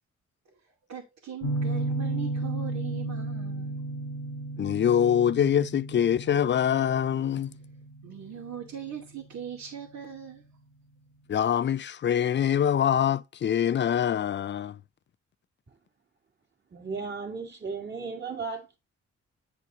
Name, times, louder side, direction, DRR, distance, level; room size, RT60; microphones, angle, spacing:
voice 1, 0.5-3.8 8.0-10.4, right 8 dB, 75° right, 2.4 m, -40 dB
sound 1, 1.4-10.1, right 2 dB, 75° left, 1.4 m, -34 dB
voice 2, 4.6-7.5 11.3-14.8, left 9 dB, 40° left, 0.4 m, -24 dB
voice 3, 16.7-18.8, right 4 dB, 35° right, 2.5 m, -35 dB
9.7 x 4.6 x 3.9 m
cardioid pair, 100°, 29 cm